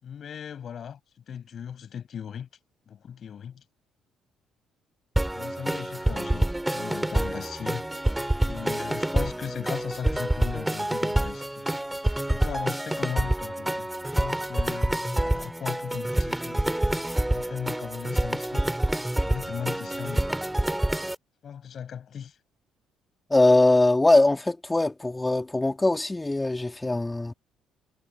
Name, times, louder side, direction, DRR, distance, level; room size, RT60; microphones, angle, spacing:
voice 1, 0.0-2.5 2.9-3.6 5.3-7.9 8.4-11.7 12.3-17.0 17.3-18.7 19.1-20.3 21.4-22.4, left 8 dB, 55° left, 7.7 m, -38 dB
sound 1, 5.2-21.1, right 1 dB, 10° right, 3.1 m, -27 dB
voice 2, 23.3-27.3, left 2 dB, 15° left, 3.2 m, -21 dB
supercardioid pair, 70°, 0 cm